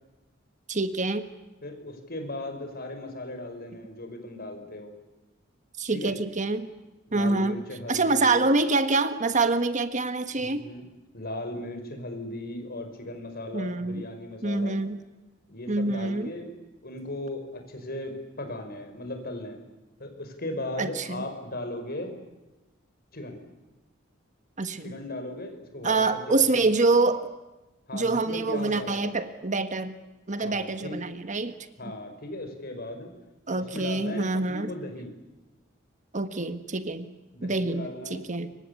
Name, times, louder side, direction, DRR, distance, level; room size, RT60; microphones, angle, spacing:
voice 1, 0.7-1.2 5.8-6.7 7.1-7.6 7.9-10.6 13.5-14.1 14.4-15.0 15.7-16.3 20.8-21.2 24.6-24.9 25.8-27.3 27.9-30.0 30.3-31.6 33.5-34.7 36.1-37.1 37.4-38.5, right 3 dB, 40° right, 10 dB, 1.5 m, -26 dB
voice 2, 1.6-4.9 5.9-6.1 7.1-8.5 10.3-10.9 11.1-14.8 15.5-16.5 16.8-19.6 20.0-22.1 23.1-23.4 24.8-26.4 26.7-26.8 27.9-29.2 30.4-31.0 31.8-33.1 33.6-35.1 37.3-38.3, left 1 dB, 50° left, 5 dB, 5.6 m, -37 dB
27.0 x 24.0 x 8.4 m, 1.1 s
head